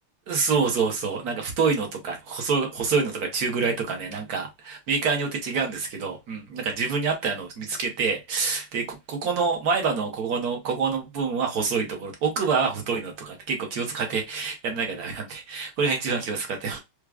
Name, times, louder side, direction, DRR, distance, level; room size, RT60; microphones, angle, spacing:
voice 1, 0.3-16.8, right 5 dB, 55° right, 1.2 m, -27 dB
4.6 x 2.2 x 2.4 m
omnidirectional pair, 2.3 m